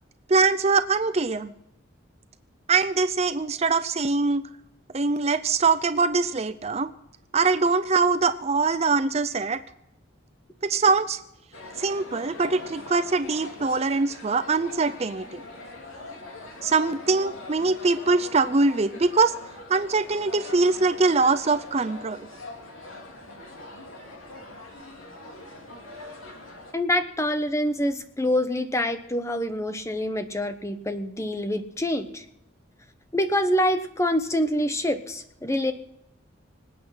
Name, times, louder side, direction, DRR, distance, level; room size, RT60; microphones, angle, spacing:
voice 1, 0.3-1.5 2.7-4.4 4.9-6.9 7.3-9.6 10.6-11.2 11.8-15.4 16.6-19.3 19.7-22.3, right 4 dB, 30° right, 12 dB, 0.5 m, -23 dB
sound 1, 11.5-26.7, left 2 dB, 85° left, 3.2 m, -42 dB
voice 2, 26.7-32.2 33.1-35.7, left 1 dB, 15° left, 9 dB, 0.9 m, -26 dB
25.5 x 8.6 x 5.7 m, 0.80 s
head